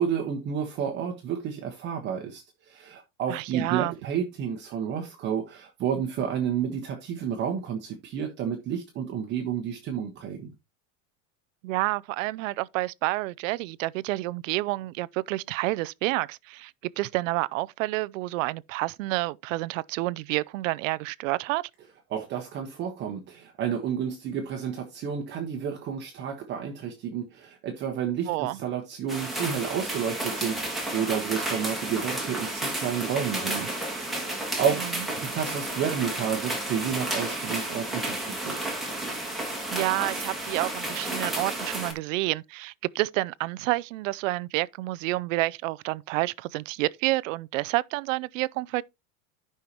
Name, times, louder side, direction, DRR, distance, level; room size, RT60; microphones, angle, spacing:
voice 1, 0.0-10.5 22.1-34.9 35.2-38.6, right 8 dB, 25° right, 1.1 m, -31 dB
voice 2, 3.3-3.9 11.6-21.7 28.3-28.6 34.8-34.9 39.7-48.8, right 20 dB, 75° right, 0.5 m, -29 dB
sound 1, 29.1-41.9, right 1 dB, ahead, 1.8 m, -32 dB
13.5 x 5.7 x 2.9 m
supercardioid pair, 175°, 39 cm